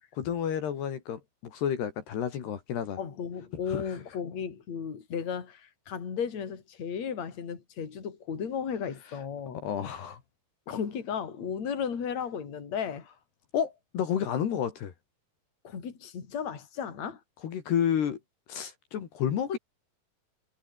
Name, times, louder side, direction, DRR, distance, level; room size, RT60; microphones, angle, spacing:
voice 1, 0.2-3.0 3.7-4.0 9.5-10.2 13.5-14.9 17.4-18.2 18.5-19.6, left 8 dB, 70° left, 4.6 m, -30 dB
voice 2, 3.0-9.6 10.7-13.1 15.6-17.2 19.5-19.6, left 7 dB, 40° left, 4.6 m, -34 dB
omnidirectional pair, 5.0 m